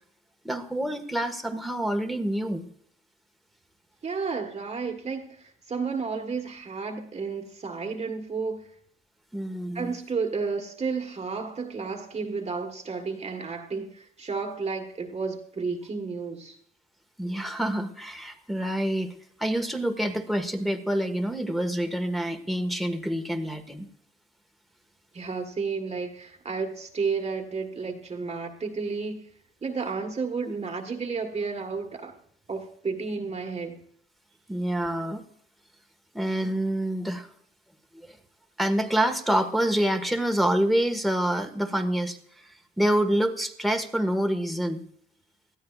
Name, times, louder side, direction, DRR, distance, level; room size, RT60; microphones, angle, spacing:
voice 1, 0.4-2.7 9.3-9.9 17.2-19.1 19.4-23.9 34.5-35.2 36.1-37.3 37.9-38.2 38.6-44.8, right 1 dB, ahead, 1.6 m, -27 dB
voice 2, 4.0-8.7 9.7-16.5 25.1-29.3 29.6-32.2 32.5-33.8, right 4 dB, 35° right, 1.6 m, -32 dB
19.5 x 13.5 x 2.4 m
cardioid pair, 90°, 20 cm